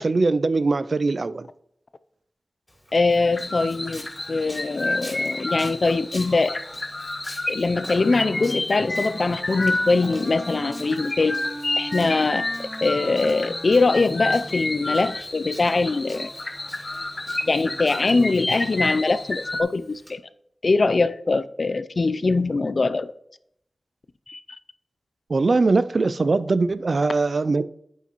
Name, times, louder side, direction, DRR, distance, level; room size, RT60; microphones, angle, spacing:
voice 1, 0.0-1.5 25.3-27.6, right 3 dB, 60° right, 0.4 m, -21 dB
Walk footsteps, 2.7-20.1, left 1 dB, 20° left, 2.1 m, -47 dB
voice 2, 2.9-6.6 7.5-11.4 11.8-16.3 17.5-20.2 20.6-23.1 24.3-24.4, left 3 dB, 60° left, 0.4 m, -22 dB
sound 1, 3.3-19.6, left 2 dB, 40° left, 1.0 m, -30 dB
Wind instrument woodwind instrument, 7.9-14.6, equal, ahead, 0.5 m, -38 dB
9.2 x 8.3 x 3.0 m
wide cardioid pair, 80°, 0 cm